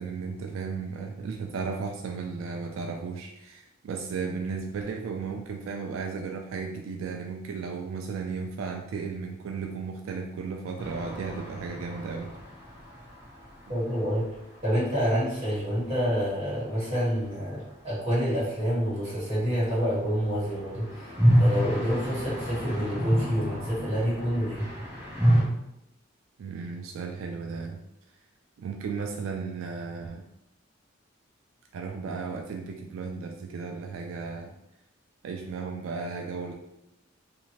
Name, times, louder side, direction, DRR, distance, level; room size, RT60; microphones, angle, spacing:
voice 1, 0.0-12.3 26.4-27.8 28.6-30.2 31.7-34.5 35.2-36.5, right 5 dB, 85° right, 3 dB, 0.3 m, -35 dB
sound 1, 10.8-14.6 14.8-14.9 15.1-15.2 20.2-25.4, equal, 10° right, 0.8 m, -28 dB
voice 2, 13.7-14.3 14.6-21.1 21.4-24.7, equal, 30° right, -9 dB, 1.4 m, -28 dB
2.6 x 2.5 x 3.0 m, 0.84 s
head